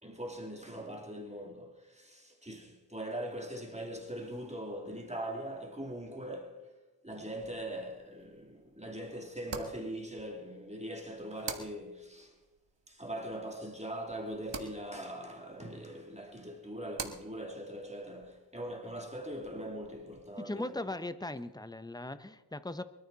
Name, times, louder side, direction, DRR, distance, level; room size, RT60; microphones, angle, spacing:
voice 1, 0.0-6.7 7.0-12.4 12.9-20.8, right 1 dB, 15° right, 2.7 m, -41 dB
sound 1, 7.4-20.2, right 5 dB, 80° right, 1.6 m, -49 dB
voice 2, 20.4-22.8, left 2 dB, 10° left, 0.9 m, -39 dB
22.5 x 14.0 x 4.1 m
wide cardioid pair, 65°, 44 cm